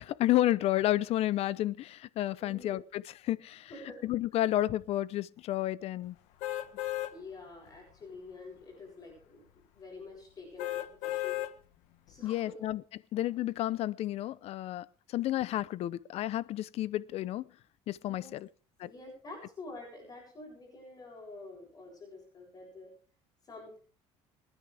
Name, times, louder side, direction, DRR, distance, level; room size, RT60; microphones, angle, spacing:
voice 1, 0.0-3.7 4.0-6.1 12.2-12.8 13.1-14.9 15.1-17.5 17.9-18.5 18.8-18.9, left 14 dB, 60° left, 0.8 m, -31 dB
voice 2, 2.4-2.8 3.7-4.0 4.3-4.4 7.1-9.4 9.7-11.4 12.1-12.6 18.0-18.4 18.8-22.9 23.4-23.8, left 3 dB, 30° left, 7.7 m, -47 dB
sound 1, 6.4-7.1 7.7-7.8 10.6-11.5 12.1-12.2, left 15 dB, 85° left, 1.7 m, -34 dB
26.5 x 10.0 x 3.5 m
cardioid pair, 125°, 12 cm